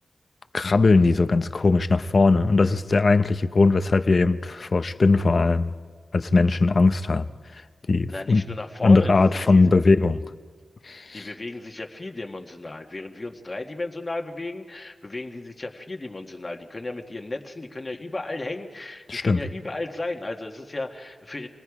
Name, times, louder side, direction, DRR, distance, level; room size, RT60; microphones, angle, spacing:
voice 1, 0.5-5.7 6.1-7.2 7.9-8.4 8.8-10.2 10.8-11.3 19.1-19.4, left 3 dB, 45° left, 0.8 m, -19 dB
voice 2, 8.1-9.7 11.1-21.5, left 2 dB, 25° left, 1.7 m, -34 dB
28.0 x 20.0 x 4.9 m
wide cardioid pair, 115°, 0 cm